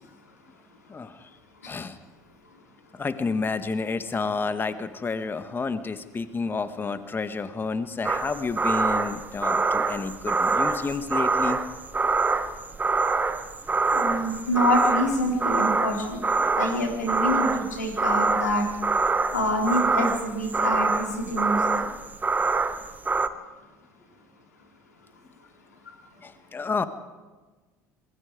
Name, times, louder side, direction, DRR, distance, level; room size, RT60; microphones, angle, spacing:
voice 1, 1.6-2.0 2.9-11.6 26.2-26.8, left 4 dB, 25° left, 11 dB, 1.6 m, -30 dB
sound 1, 8.0-23.3, right 4 dB, 20° right, 1.2 m, -25 dB
voice 2, 13.9-16.2 16.5-18.6 19.3-21.9, left 1 dB, 85° left, 1 dB, 3.7 m, -26 dB
27.0 x 20.5 x 4.9 m, 1.3 s
figure-of-eight pair, 65°, 9 cm